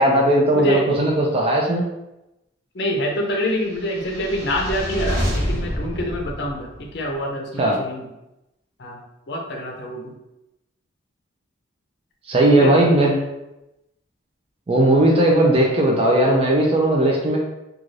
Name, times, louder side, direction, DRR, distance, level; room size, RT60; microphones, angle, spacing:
voice 1, 0.0-1.8 7.6-7.8 12.3-13.2 14.7-17.4, right 1 dB, 30° right, -2 dB, 0.4 m, -17 dB
voice 2, 2.7-8.1 8.8-9.0 9.3-10.2 12.6-12.8, equal, 55° left, 1 dB, 0.5 m, -26 dB
sound 1, 3.6-7.1, equal, 55° right, 0.9 m, -27 dB
2.5 x 2.3 x 3.1 m, 0.92 s
head